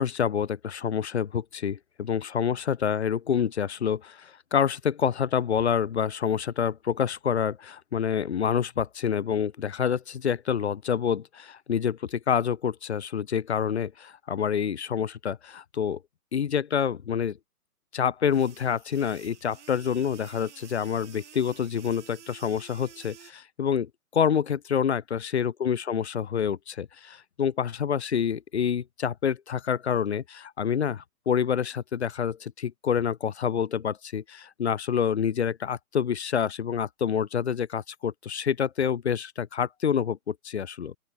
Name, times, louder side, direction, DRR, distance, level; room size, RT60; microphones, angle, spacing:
voice 1, 0.0-16.0 16.3-17.4 17.9-40.9, left 7 dB, 50° left, 0.5 m, -27 dB
sound 1, 18.3-23.3, right 8 dB, 50° right, 2.2 m, -50 dB
open air
figure-of-eight pair, 130°, 45 cm